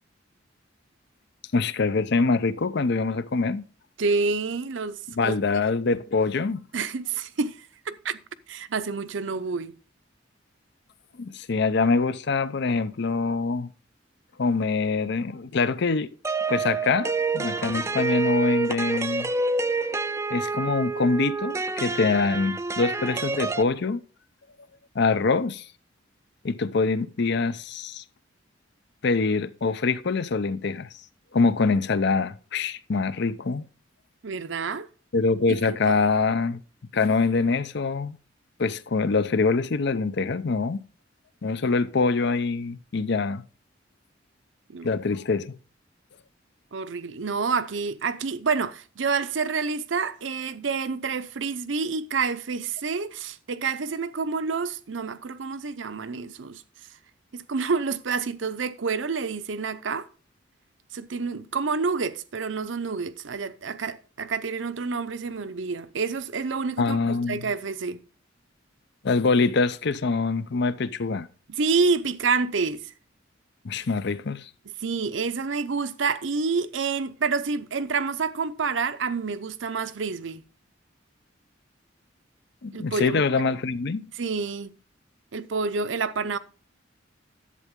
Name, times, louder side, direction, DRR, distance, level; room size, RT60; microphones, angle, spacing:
voice 1, 1.5-3.6 5.2-6.6 11.2-13.7 14.4-16.1 16.5-19.3 20.3-24.0 24.9-25.6 26.4-28.0 29.0-30.9 31.3-33.7 35.1-36.6 36.9-38.2 38.6-40.8 41.4-43.4 44.8-45.5 66.8-67.5 69.0-71.3 73.6-74.5 82.6-84.0, left 4 dB, 60° left, 0.6 m, -24 dB
voice 2, 4.0-5.4 6.7-8.2 8.5-9.7 34.2-34.9 35.5-35.6 35.9-36.0 44.7-44.9 46.7-56.6 57.3-60.1 60.9-68.0 71.5-72.9 74.8-80.4 82.7-83.2 84.2-84.7 85.3-86.4, right 4 dB, 70° right, 0.7 m, -28 dB
sound 1, 16.2-23.6, right 4 dB, 15° right, 0.4 m, -28 dB
11.0 x 8.1 x 3.7 m
head